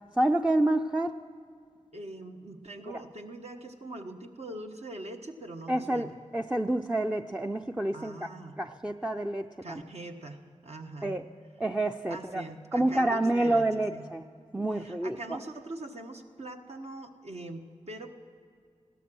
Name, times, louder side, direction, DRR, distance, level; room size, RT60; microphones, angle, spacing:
voice 1, 0.2-1.1 5.7-8.3 8.6-9.8 11.0-11.2 11.6-12.4 12.7-14.2 14.5-15.4, right 1 dB, 5° right, 4 dB, 0.5 m, -28 dB
voice 2, 1.9-6.1 7.9-8.6 9.6-10.4 10.6-11.2 12.1-14.1 14.7-18.1, right 2 dB, 60° right, 4 dB, 1.2 m, -42 dB
16.5 x 12.5 x 6.2 m, 2.3 s
cardioid pair, 50°, 13 cm